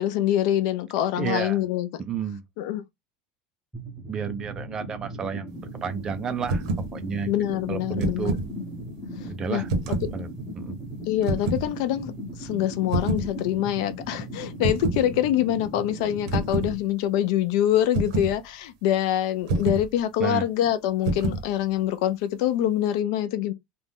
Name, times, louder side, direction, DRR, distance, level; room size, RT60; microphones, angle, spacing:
voice 1, 0.0-1.9 2.6-2.8 7.3-8.4 9.5-9.6 10.0-10.1 11.1-12.1 12.4-23.5, left 12 dB, 60° left, 0.4 m, -25 dB
voice 2, 1.2-1.6 2.0-2.4 4.1-6.7 6.9-7.3 7.7-8.4 9.2-10.3 10.6-10.8 20.2-20.5, right 6 dB, 20° right, 0.3 m, -31 dB
sound 1, 3.7-16.7, equal, ahead, 0.7 m, -38 dB
sound 2, 6.4-6.9 7.8-8.5 9.7-10.1 11.2-11.7 12.9-13.3 14.6-15.1 16.3-16.7 17.9-18.4 19.5-19.9 21.0-21.5, right 3 dB, 70° right, 0.8 m, -26 dB
2.5 x 2.2 x 3.4 m
cardioid pair, 180°, 3 cm